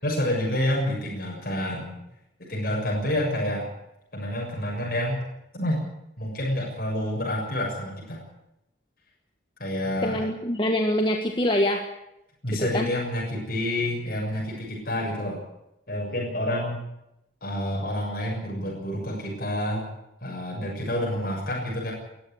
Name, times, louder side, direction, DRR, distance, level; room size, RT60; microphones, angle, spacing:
voice 1, 0.0-2.0 2.5-3.7 4.1-5.2 5.5-5.8 6.2-8.2 9.6-10.2 12.4-15.4 15.9-16.8 17.4-19.8 20.2-21.9, left 1 dB, 50° left, -2 dB, 6.8 m, -28 dB
voice 2, 10.0-11.9 12.6-12.9, left 1 dB, 25° left, 4 dB, 1.5 m, -24 dB
20.0 x 14.5 x 9.8 m, 0.86 s
head